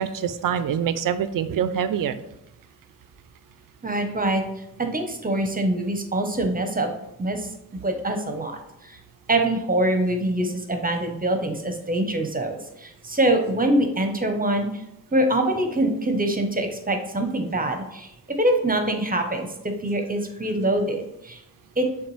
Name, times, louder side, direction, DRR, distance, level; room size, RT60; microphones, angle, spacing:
voice 1, 0.0-2.2, right 8 dB, 65° right, 12 dB, 0.5 m, -25 dB
voice 2, 3.8-4.4 4.8-6.9 7.2-9.0 9.3-14.8 15.1-21.4 21.8-21.9, right 1 dB, 25° right, 5 dB, 0.8 m, -24 dB
6.5 x 2.3 x 3.2 m, 0.84 s
cardioid pair, 45°, 36 cm